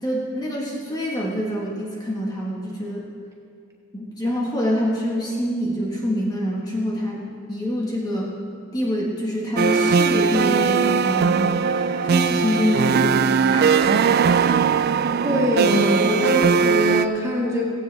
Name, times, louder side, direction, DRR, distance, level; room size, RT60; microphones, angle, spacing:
voice 1, 0.0-3.1 3.9-8.4 8.7-14.3, equal, 20° left, -3 dB, 1.5 m, -26 dB
sound 1, 9.6-17.1, right 5 dB, 45° right, 0.3 m, -19 dB
voice 2, 15.2-17.7, equal, 15° right, -3 dB, 1.8 m, -22 dB
16.5 x 16.0 x 3.4 m, 2.4 s
head